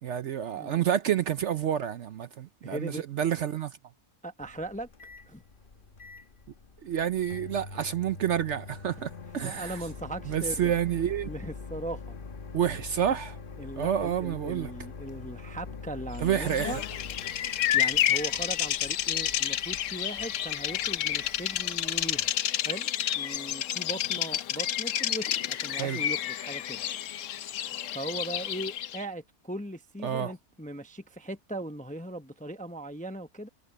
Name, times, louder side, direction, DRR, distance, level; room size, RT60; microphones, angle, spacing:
voice 1, 0.0-3.8 6.8-9.8 10.3-11.3 12.5-13.4 13.7-14.7 16.2-16.8 25.8-26.0 30.0-30.3, right 9 dB, 60° right, 0.8 m, -29 dB
voice 2, 2.6-3.0 4.2-4.9 5.3-5.4 9.4-10.7 11.2-12.2 13.6-16.8 17.7-22.3 22.6-26.8 27.9-33.5, right 1 dB, 10° left, 0.6 m, -39 dB
Microwave oven, 4.4-22.4, left 4 dB, 40° left, 1.2 m, -44 dB
Bird vocalization bird call bird song, 16.4-29.0, left 11 dB, 65° left, 1.0 m, -30 dB
omnidirectional pair, 1.5 m